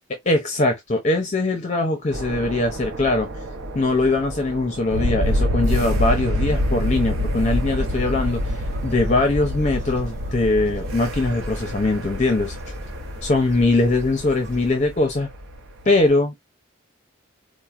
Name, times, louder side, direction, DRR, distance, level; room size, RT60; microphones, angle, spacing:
voice 1, 0.3-3.3 3.7-8.5 8.8-12.6 13.2-15.3 15.8-16.3, left 2 dB, 35° left, 0.5 m, -21 dB
sound 1, 2.1-16.1, equal, 75° right, 0.6 m, -27 dB
sound 2, 7.4-14.7, equal, 35° right, 2.1 m, -41 dB
4.3 x 2.1 x 2.4 m
head